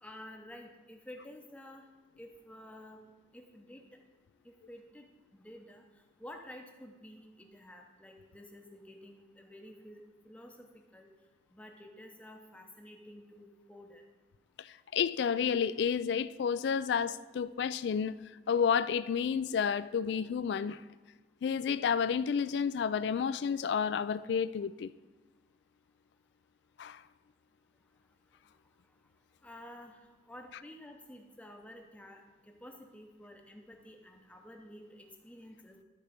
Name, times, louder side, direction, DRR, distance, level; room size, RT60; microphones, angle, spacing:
voice 1, 0.0-1.9 2.2-3.0 3.3-3.8 4.4-5.1 5.3-5.8 6.2-11.1 11.5-14.0 29.4-30.0 30.3-35.8, left 1 dB, 5° left, 0.7 m, -51 dB
voice 2, 14.6-18.2 18.5-20.8 21.4-24.9 26.8-27.0, left 7 dB, 75° left, 0.3 m, -30 dB
12.0 x 4.3 x 5.1 m
head